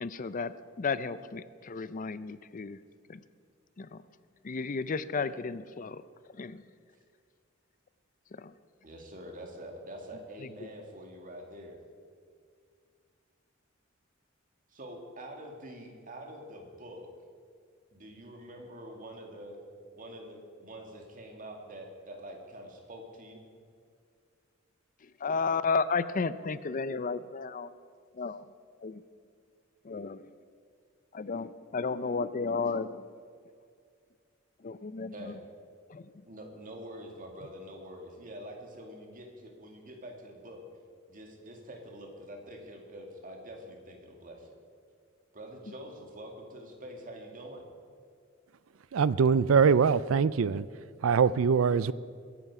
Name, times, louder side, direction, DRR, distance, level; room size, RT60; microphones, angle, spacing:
voice 1, 0.0-2.8 3.1-3.2 3.8-4.0 4.4-6.0 6.4-6.6 8.3-8.5 10.4-10.7 25.2-27.7 28.2-28.5 28.8-29.0 29.8-30.2 31.1-33.0 34.6-35.3 35.9-36.1, left 4 dB, 40° left, 15 dB, 0.5 m, -33 dB
voice 2, 8.8-11.8 14.7-17.1 17.9-19.6 19.9-23.4 35.1-35.4 36.2-40.6 41.1-44.5 45.3-47.6, right 1 dB, 40° right, 2 dB, 2.3 m, -46 dB
voice 3, 48.9-50.7 51.0-51.9, right 6 dB, 80° right, 18 dB, 0.4 m, -23 dB
21.5 x 11.0 x 4.9 m, 2.2 s
head